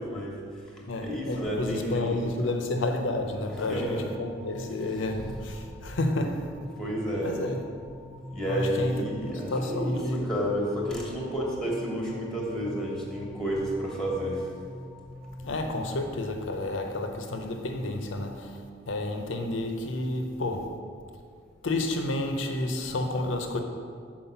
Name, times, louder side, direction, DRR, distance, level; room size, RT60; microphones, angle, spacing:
voice 1, 0.0-2.5 3.5-4.1 6.8-7.3 8.3-14.5, equal, ahead, 1.2 m, -31 dB
voice 2, 0.9-6.5 7.2-7.7 8.4-10.3 15.4-20.8 21.6-23.6, left 2 dB, 90° left, 0.7 m, -30 dB
sound 1, 3.4-16.1, equal, 25° right, 0.9 m, -45 dB
5.7 x 4.5 x 5.7 m
head